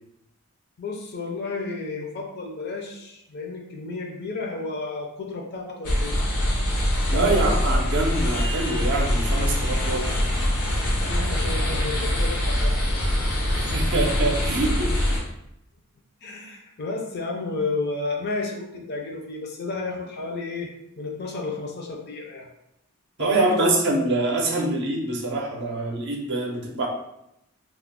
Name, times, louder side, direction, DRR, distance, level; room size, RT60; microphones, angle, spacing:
voice 1, 0.8-6.2 7.1-7.5 11.0-13.3 16.2-20.7 21.0-22.5 23.2-23.7, left 3 dB, 50° left, 1 dB, 0.5 m, -32 dB
sound 1, 5.8-15.2, equal, 85° left, 0.7 m, -23 dB
voice 2, 7.1-10.1 13.5-15.2 23.2-26.9, right 2 dB, 55° right, 1 dB, 0.5 m, -25 dB
2.3 x 2.0 x 3.5 m, 0.82 s
head